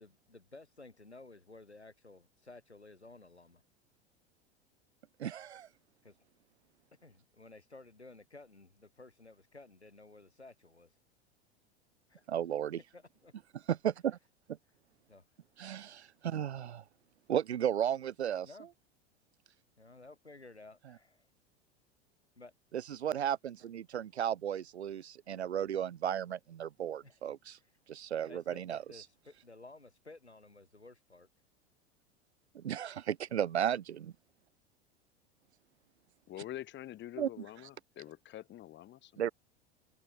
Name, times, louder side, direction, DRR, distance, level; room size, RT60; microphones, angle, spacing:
voice 1, 0.0-3.6 6.0-6.2 7.0-10.9 12.1-12.3 12.9-13.3 15.1-15.3 18.4-18.7 19.8-21.3 22.4-22.5 27.0-27.3 28.3-31.3, left 2 dB, 90° left, 5.1 m, -54 dB
voice 2, 5.2-5.7 12.3-12.8 13.7-14.2 15.6-16.8 17.3-18.5 22.7-27.6 27.9-28.8 32.5-34.1 37.2-37.3 39.2-39.3, right 9 dB, 85° right, 0.5 m, -34 dB
voice 3, 36.3-39.2, left 13 dB, 35° left, 2.5 m, -46 dB
figure-of-eight pair, 85°, 32 cm